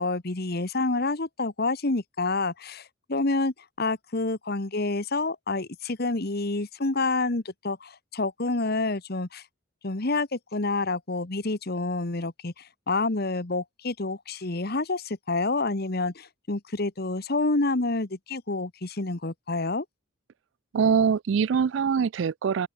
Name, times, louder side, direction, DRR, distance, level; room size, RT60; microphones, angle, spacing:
voice 1, 0.0-9.4 9.8-19.8, left 3 dB, 50° left, 1.3 m, -28 dB
voice 2, 20.7-22.7, right 6 dB, 60° right, 0.4 m, -23 dB
open air
head